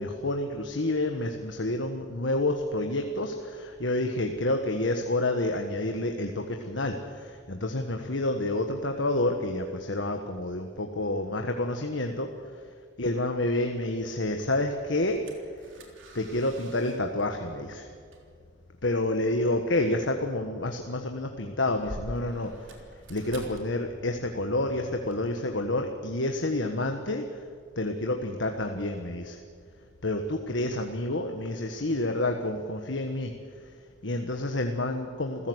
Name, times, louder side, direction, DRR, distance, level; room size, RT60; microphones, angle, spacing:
voice 1, 0.0-12.3 13.0-15.2 16.1-17.9 18.8-22.5 23.1-27.2 27.8-29.4 30.0-33.3 34.0-35.5, left 2 dB, 70° left, 4 dB, 1.5 m, -29 dB
sound 1, 14.2-25.4, right 1 dB, 80° right, 3.7 m, -48 dB
28.5 x 15.5 x 8.1 m, 2.1 s
head